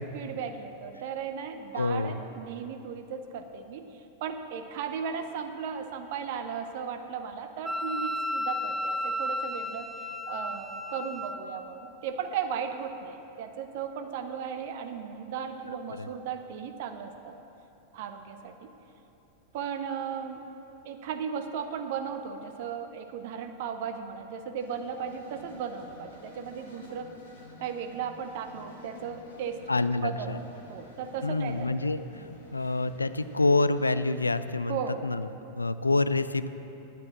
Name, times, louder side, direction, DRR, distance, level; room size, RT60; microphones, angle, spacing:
voice 1, 0.1-9.9 10.3-17.4 17.9-18.7 19.5-20.4 20.8-27.1 27.6-29.6 30.0-31.9 34.7-35.0, right 7 dB, 50° right, 7 dB, 0.6 m, -36 dB
voice 2, 1.7-2.2 16.0-16.1 29.7-30.4 31.2-35.3 35.5-36.5, left 3 dB, 80° left, 13 dB, 0.3 m, -27 dB
Wind instrument woodwind instrument, 7.6-11.4, left 1 dB, ahead, 0.5 m, -33 dB
sound 1, 24.6-34.5, left 2 dB, 65° left, 1.8 m, -51 dB
9.7 x 7.3 x 7.4 m, 2.9 s
figure-of-eight pair, 90°, 0 cm